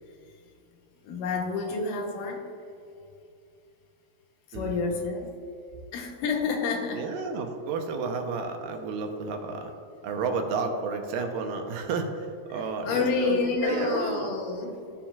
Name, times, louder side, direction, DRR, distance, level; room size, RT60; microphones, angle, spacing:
voice 1, 1.0-2.4 4.5-5.3 5.9-7.0 12.5-14.8, left 4 dB, 80° left, 3 dB, 2.5 m, -29 dB
voice 2, 4.5-4.8 6.9-9.7 10.0-14.3, right 4 dB, 85° right, 4 dB, 2.5 m, -31 dB
14.5 x 7.2 x 2.4 m, 2.6 s
omnidirectional pair, 3.8 m